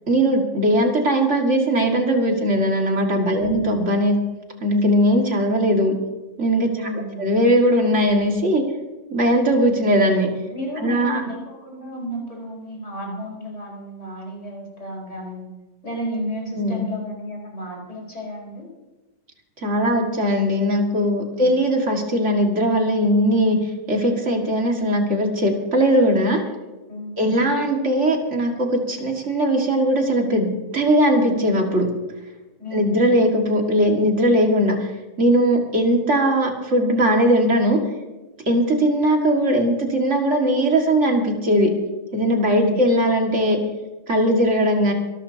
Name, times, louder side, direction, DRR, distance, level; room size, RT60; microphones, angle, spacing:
voice 1, 0.1-4.2 4.6-5.9 6.4-6.7 7.2-8.6 9.1-10.3 10.8-11.2 16.6-16.9 19.6-23.6 23.9-26.4 27.2-31.9 32.7-34.9 35.2-37.8 38.5-41.7 42.1-43.6 44.1-44.9, equal, 50° right, 1 dB, 2.5 m, -19 dB
voice 2, 3.2-3.6 6.7-7.3 10.5-15.5 15.8-18.6 21.4-21.6 26.9-27.4 32.6-33.0 42.5-42.8, equal, 50° left, -2 dB, 5.3 m, -32 dB
25.5 x 12.5 x 2.9 m, 1.1 s
omnidirectional pair, 1.6 m